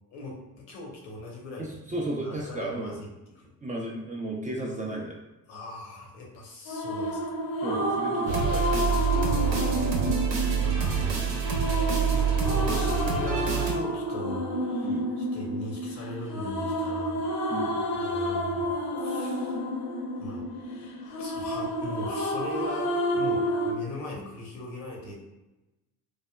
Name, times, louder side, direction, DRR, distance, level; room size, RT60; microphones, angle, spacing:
voice 1, 0.1-3.5 5.5-7.5 10.0-10.2 10.6-11.6 12.1-17.2 17.9-19.6 20.2-20.5 21.2-25.1, left 1 dB, 75° left, -1 dB, 1.0 m, -40 dB
voice 2, 1.6-3.0 3.6-5.2 7.6-9.0 11.0-11.3 14.8-15.1 17.5-17.7, right 2 dB, 15° right, -2 dB, 0.4 m, -34 dB
sound 1, 6.7-23.7, equal, 45° left, 0.7 m, -30 dB
sound 2, 8.3-13.7, right 7 dB, 65° right, 0.8 m, -26 dB
3.3 x 2.1 x 2.2 m, 0.99 s
hypercardioid pair, 65°, 49 cm